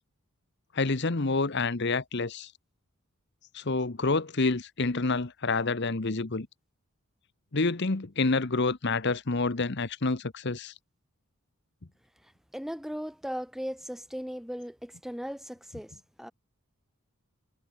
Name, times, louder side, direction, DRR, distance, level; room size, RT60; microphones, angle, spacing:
voice 1, 0.7-2.5 3.5-6.5 7.5-10.7, left 3 dB, 50° left, 1.1 m, -28 dB
voice 2, 12.5-15.9 16.2-16.3, equal, ahead, 2.9 m, -37 dB
head